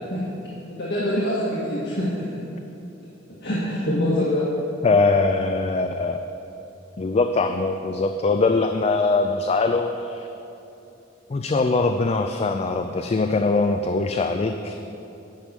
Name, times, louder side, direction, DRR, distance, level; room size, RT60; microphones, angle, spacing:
voice 1, 0.7-2.2 3.4-4.5, equal, 65° left, -7 dB, 1.7 m, -25 dB
voice 2, 3.9-4.3 4.8-6.2 7.0-10.3 11.3-14.8, left 3 dB, 35° left, 6 dB, 0.4 m, -22 dB
10.5 x 6.1 x 8.1 m, 2.9 s
head